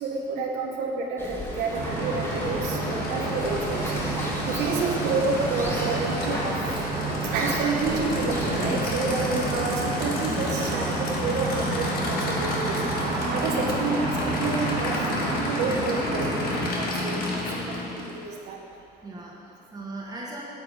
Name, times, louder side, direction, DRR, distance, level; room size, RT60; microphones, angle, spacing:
voice 1, 0.0-4.0 4.4-6.6 7.3-12.8 13.3-14.9 15.3-16.3 16.8-18.6, right 4 dB, 85° right, -1 dB, 1.1 m, -29 dB
sound 1, 1.2-9.6, left 1 dB, 15° left, 1.4 m, -35 dB
Aircraft / Idling, 1.3-18.2, left 2 dB, 65° left, 1.6 m, -31 dB
sound 2, 1.7-16.7, right 4 dB, 65° right, 1.5 m, -31 dB
voice 2, 17.1-17.5 19.0-20.4, right 2 dB, 25° right, -4 dB, 1.2 m, -39 dB
8.2 x 6.9 x 4.8 m, 2.6 s
cardioid pair, 110°, 17 cm